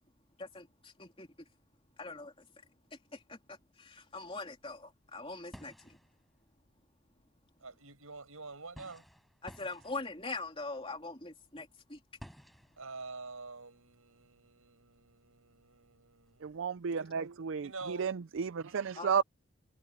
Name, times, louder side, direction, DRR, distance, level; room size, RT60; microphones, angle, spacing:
voice 1, 0.4-1.5 2.0-2.5 3.1-6.0 9.4-12.0 19.0-19.2, left 3 dB, 25° left, 3.2 m, -43 dB
sound 1, 4.1-4.2 4.5-16.8, equal, ahead, 4.9 m, -57 dB
voice 2, 7.6-9.0 12.8-16.5 17.6-18.1, right 3 dB, 90° right, 6.3 m, -47 dB
voice 3, 16.4-19.2, right 6 dB, 65° right, 0.4 m, -33 dB
head